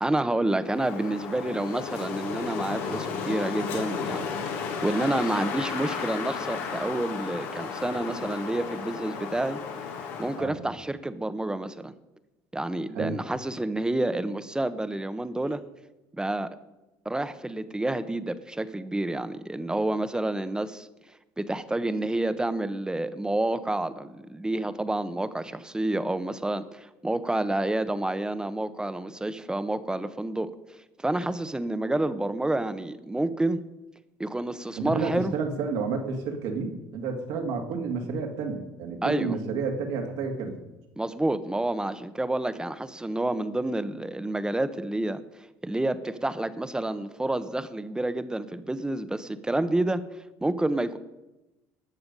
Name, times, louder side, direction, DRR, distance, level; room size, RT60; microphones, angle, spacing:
voice 1, 0.0-4.3 4.6-9.6 10.2-11.9 12.5-15.6 16.2-16.5 17.0-20.9 21.4-30.5 31.0-33.6 34.2-35.3 39.0-39.4 41.0-45.2 45.6-50.0 50.4-51.0, right 1 dB, 10° right, 13 dB, 0.9 m, -29 dB
Wind, 0.6-10.5, left 5 dB, 85° left, 2.2 m, -33 dB
voice 2, 34.8-40.6, right 4 dB, 75° right, 3 dB, 2.3 m, -30 dB
19.0 x 6.8 x 5.4 m, 1.0 s
supercardioid pair, 85°, 8 cm